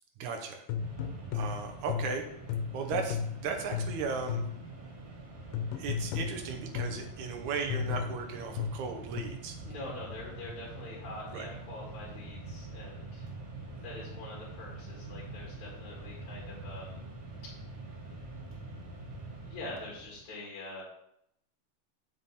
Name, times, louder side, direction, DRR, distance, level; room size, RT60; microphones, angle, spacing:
voice 1, 0.2-0.6 1.3-2.2 2.7-4.4 5.7-9.6 11.3-11.5, right 5 dB, 70° right, 4 dB, 2.1 m, -36 dB
sound 1, 0.7-4.7 5.5-7.1 7.7-9.2, left 7 dB, 85° left, 2.4 m, -35 dB
Mechanisms, 0.8-20.2, right 2 dB, 45° right, 2.3 m, -45 dB
voice 2, 9.6-13.2 13.8-17.0 19.4-20.8, left 2 dB, 55° left, -5 dB, 3.2 m, -44 dB
7.2 x 6.5 x 4.2 m, 0.76 s
omnidirectional pair, 3.9 m